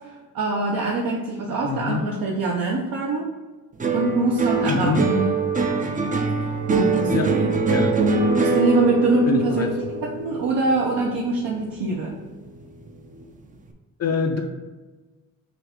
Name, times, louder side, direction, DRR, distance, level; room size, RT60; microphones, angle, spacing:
voice 1, 0.3-3.3 3.9-5.3 6.7-7.5 8.4-9.7 10.0-12.2, right 3 dB, 70° right, -2 dB, 0.7 m, -23 dB
voice 2, 1.6-2.1 4.7-5.1 7.1-7.3 7.7-7.9 9.3-9.7 14.0-14.4, left 5 dB, 45° left, 3 dB, 0.5 m, -25 dB
sound 1, 3.8-12.3 12.6-13.2, right 3 dB, 25° right, 0.4 m, -23 dB
5.9 x 2.4 x 3.6 m, 1.2 s
cardioid pair, 110°, 36 cm